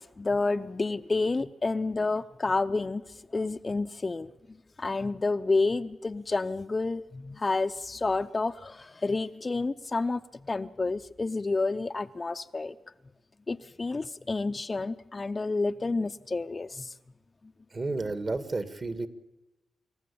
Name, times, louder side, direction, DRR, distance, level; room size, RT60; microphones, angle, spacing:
voice 1, 0.0-3.0 3.3-4.3 4.8-12.7 13.5-16.9, left 3 dB, 30° left, 10 dB, 0.7 m, -29 dB
voice 2, 17.7-19.1, right 3 dB, 40° right, 10 dB, 2.0 m, -31 dB
27.0 x 14.0 x 8.7 m, 1.1 s
cardioid pair, 80°, 0 cm